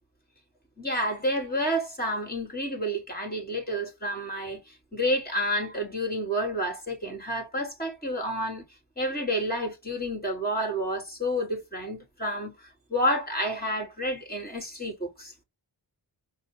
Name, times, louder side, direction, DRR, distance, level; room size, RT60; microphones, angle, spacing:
voice 1, 0.8-8.7 9.0-15.3, equal, 20° left, 3.6 m, -30 dB
4.8 x 2.8 x 3.8 m
cardioid pair, 40°, 45 cm